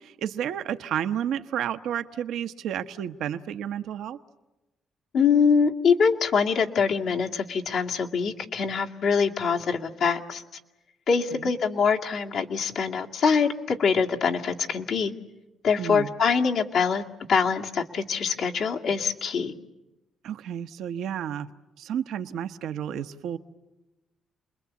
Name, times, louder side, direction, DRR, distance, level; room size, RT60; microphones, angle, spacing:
voice 1, 0.0-4.2 11.3-11.5 15.8-16.1 20.2-21.5 21.8-23.4, right 9 dB, 80° right, 10 dB, 1.0 m, -31 dB
voice 2, 5.1-10.4 11.1-15.1 15.6-17.0 17.3-19.5, left 6 dB, 70° left, 0 dB, 2.1 m, -24 dB
29.0 x 21.5 x 8.3 m, 1.0 s
cardioid pair, 90°, 0 cm